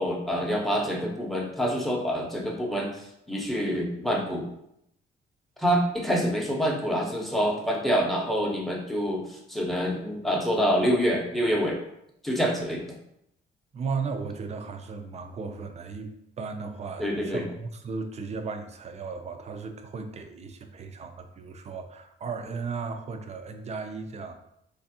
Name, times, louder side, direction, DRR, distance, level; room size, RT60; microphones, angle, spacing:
voice 1, 0.0-4.5 5.6-11.8 12.2-12.8 17.0-17.4, equal, ahead, -1 dB, 0.7 m, -26 dB
voice 2, 13.7-24.3, right 4 dB, 35° right, 6 dB, 0.4 m, -36 dB
3.2 x 2.5 x 2.7 m, 0.76 s
cardioid pair, 90°, 20 cm